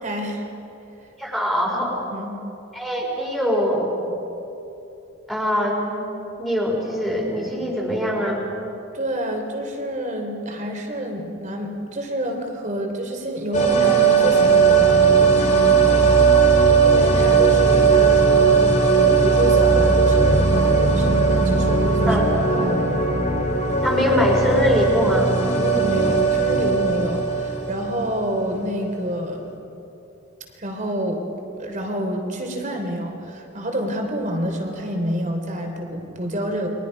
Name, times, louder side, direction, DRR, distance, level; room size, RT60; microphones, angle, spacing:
voice 1, 0.0-0.5 2.1-2.4 8.9-16.3 16.8-18.6 18.9-22.2 22.5-23.0 25.5-29.5 30.5-31.2 31.6-36.7, equal, 35° right, 2 dB, 3.1 m, -28 dB
voice 2, 1.2-2.0 2.7-3.9 5.3-6.0 6.4-8.4 22.1-22.3 23.8-25.3, equal, ahead, -3 dB, 4.3 m, -22 dB
sound 1, 13.5-28.4 28.7-28.8, right 5 dB, 35° left, 2.9 m, -17 dB
30.0 x 23.5 x 5.3 m, 2.9 s
head